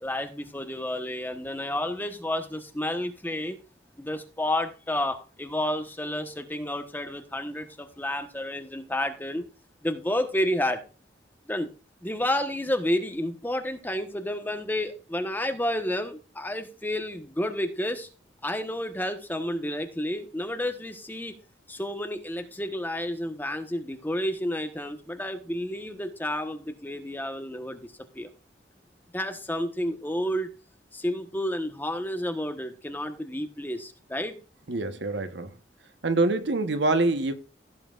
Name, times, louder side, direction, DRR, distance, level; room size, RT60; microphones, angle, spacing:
voice 1, 0.0-3.6 4.0-9.5 9.8-10.8 11.5-11.7 12.0-18.1 18.4-21.3 21.7-27.9 28.1-28.3 29.1-30.5 30.9-34.4, left 1 dB, 10° left, 1.1 m, -30 dB
voice 2, 34.7-35.5 36.0-37.3, right 2 dB, 85° right, 1.1 m, -25 dB
16.0 x 7.4 x 2.5 m
head